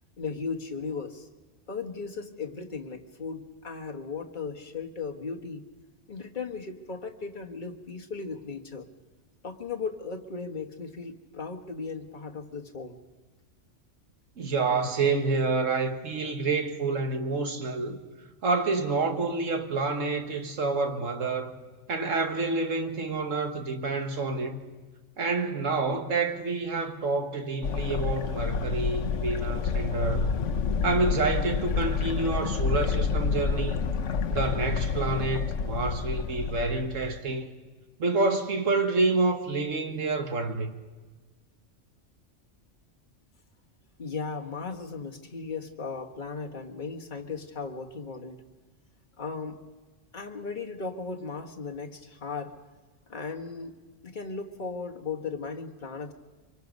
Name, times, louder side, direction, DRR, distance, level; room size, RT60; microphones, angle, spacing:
voice 1, 0.2-1.3 1.7-5.6 6.1-8.9 9.4-13.0 44.0-48.4 49.2-49.6 50.1-52.6 53.1-53.8 54.0-56.1, left 4 dB, 40° left, 1.6 m, -36 dB
voice 2, 14.4-18.0 18.4-21.5 21.9-24.6 25.2-30.3 30.8-33.8 34.3-37.5 38.0-40.7, right 3 dB, 85° right, 2.0 m, -28 dB
sound 1, 27.6-37.2, left 5 dB, 75° left, 1.2 m, -29 dB
24.5 x 24.0 x 5.3 m
omnidirectional pair, 1.3 m